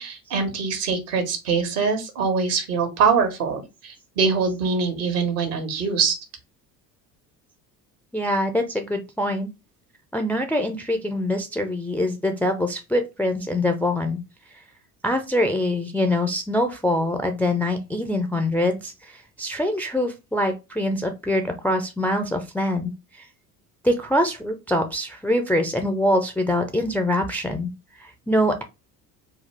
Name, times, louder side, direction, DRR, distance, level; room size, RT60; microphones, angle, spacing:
voice 1, 0.0-6.2, right 5 dB, 70° right, 6 dB, 1.3 m, -23 dB
voice 2, 8.1-9.5 10.1-14.2 15.0-22.9 23.8-27.7 28.0-28.6, left 1 dB, 5° left, 6 dB, 0.3 m, -24 dB
4.1 x 2.3 x 3.3 m, 0.25 s
figure-of-eight pair, 55°, 47 cm